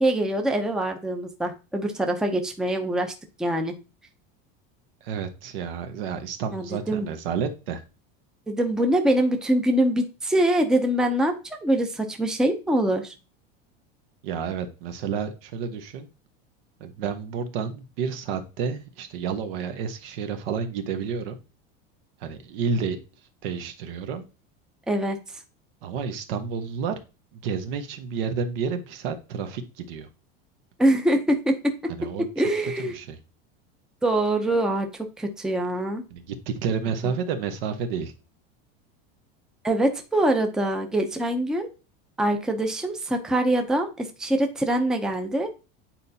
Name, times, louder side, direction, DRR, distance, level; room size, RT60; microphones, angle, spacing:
voice 1, 0.0-3.8 6.5-7.2 8.5-13.1 24.9-25.4 30.8-31.9 32.4-33.0 34.0-34.9 35.2-36.0 37.0-37.1 39.6-41.7 42.2-45.5, right 1 dB, ahead, 4 dB, 0.6 m, -24 dB
voice 2, 5.0-7.8 14.2-16.1 16.8-21.4 22.2-23.0 23.4-24.2 25.8-27.0 27.3-30.1 31.9-32.3 32.8-33.2 36.1-38.1, right 6 dB, 75° right, 7 dB, 1.2 m, -30 dB
8.9 x 4.3 x 2.7 m, 0.31 s
supercardioid pair, 145°, 29 cm